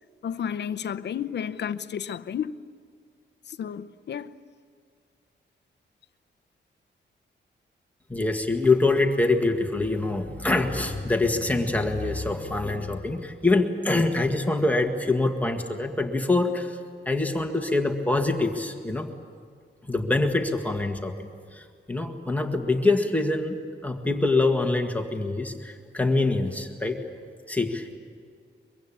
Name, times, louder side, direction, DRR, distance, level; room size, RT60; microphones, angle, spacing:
voice 1, 0.2-2.6 3.5-4.4, left 8 dB, 60° left, 0.8 m, -32 dB
voice 2, 8.1-16.8 17.1-19.1 19.9-23.6 23.8-27.0 27.5-28.0, left 2 dB, 10° left, 1.8 m, -25 dB
23.5 x 23.5 x 8.8 m
wide cardioid pair, 160°, 20 cm